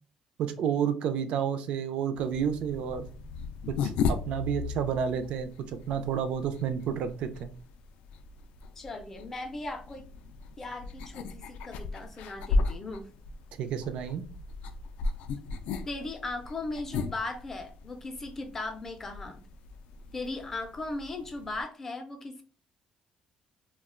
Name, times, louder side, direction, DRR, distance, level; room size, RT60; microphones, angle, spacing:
voice 1, 0.4-3.1 3.7-7.5 13.6-14.3, right 8 dB, 60° right, 9 dB, 0.4 m, -30 dB
sound 1, 2.1-21.6, left 4 dB, 90° left, 0.3 m, -36 dB
voice 2, 8.8-10.1 10.6-13.1 15.9-19.4 20.1-22.4, left 2 dB, 20° left, 5 dB, 0.4 m, -37 dB
2.3 x 2.1 x 3.6 m, 0.37 s
cardioid pair, 180°, 2 cm